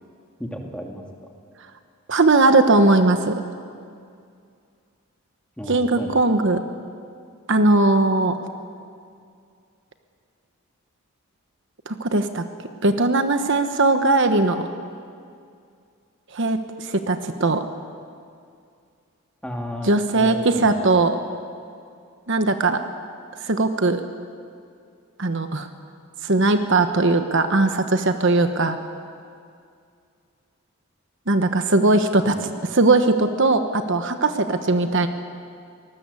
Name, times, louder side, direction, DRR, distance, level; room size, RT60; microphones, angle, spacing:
voice 1, 0.4-1.0 5.6-6.3 19.4-20.7 32.2-32.4, equal, 5° left, 1 dB, 2.4 m, -33 dB
voice 2, 2.1-3.4 5.7-6.6 7.5-8.3 11.9-12.4 12.8-14.7 16.3-17.6 19.8-21.2 22.3-22.8 23.4-24.0 25.2-25.7 26.2-28.8 31.3-32.3 32.7-35.1, right 2 dB, 55° right, 8 dB, 1.1 m, -19 dB
25.0 x 19.5 x 8.4 m, 2.3 s
head